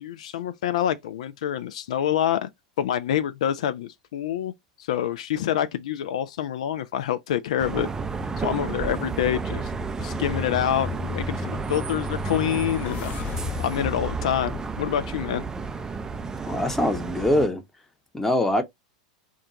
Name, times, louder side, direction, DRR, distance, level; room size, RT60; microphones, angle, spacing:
voice 1, 0.0-2.5 2.8-4.5 4.8-7.9 8.4-9.7 10.0-13.1 13.6-15.4, left 10 dB, 65° left, 0.3 m, -27 dB
sound 1, 7.6-17.5, right 3 dB, 15° right, 0.4 m, -31 dB
sound 2, 11.9-16.0, left 9 dB, 40° left, 0.8 m, -38 dB
voice 2, 16.4-17.6 18.1-18.6, left 1 dB, 10° left, 0.8 m, -23 dB
2.3 x 2.2 x 3.9 m
hypercardioid pair, 95°, 4 cm